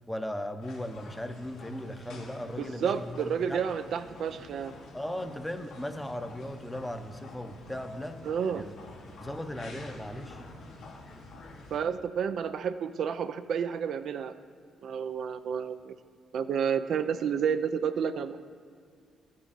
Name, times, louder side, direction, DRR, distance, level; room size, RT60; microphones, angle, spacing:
voice 1, 0.1-3.7 4.9-8.7 9.2-10.4, left 1 dB, 5° left, 8 dB, 0.7 m, -37 dB
sound 1, 0.6-11.8, left 2 dB, 90° left, 2.3 m, -48 dB
voice 2, 2.6-4.7 8.2-8.6 11.7-14.3 14.8-16.0 16.3-18.5, right 7 dB, 65° right, 9 dB, 0.5 m, -30 dB
14.0 x 7.6 x 4.1 m, 2.3 s
cardioid pair, 90°, 0 cm